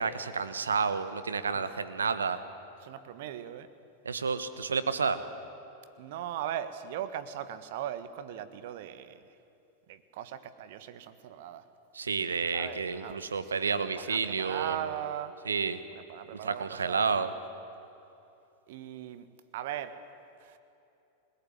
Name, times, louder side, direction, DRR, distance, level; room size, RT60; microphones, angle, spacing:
voice 1, 0.0-2.4 4.0-5.2 11.9-14.8 15.4-15.8 16.3-17.3, right 5 dB, 70° right, 12 dB, 1.5 m, -30 dB
voice 2, 2.8-3.7 6.0-9.3 9.9-11.7 12.5-13.3 13.5-15.4 15.9-17.3 18.7-19.3 19.5-20.0 20.4-20.6, right 10 dB, 50° right, 13 dB, 1.5 m, -39 dB
28.5 x 20.5 x 9.7 m, 2.7 s
figure-of-eight pair, 90°, 0 cm